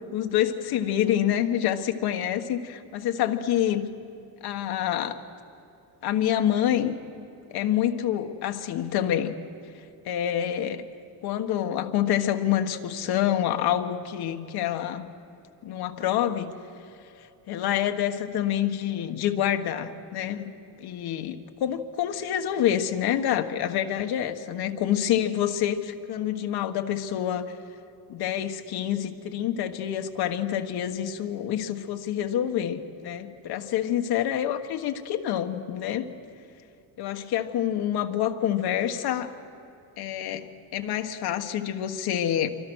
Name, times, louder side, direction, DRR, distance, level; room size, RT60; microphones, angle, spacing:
voice 1, 0.1-3.9 4.4-5.2 6.0-6.9 7.5-9.3 10.0-10.9 11.2-15.0 15.6-16.5 17.5-20.5 20.8-27.5 28.1-36.1 37.0-39.3 40.0-42.5, left 10 dB, 65° left, 6 dB, 1.5 m, -27 dB
27.0 x 24.5 x 6.3 m, 2.8 s
cardioid pair, 175°, 40 cm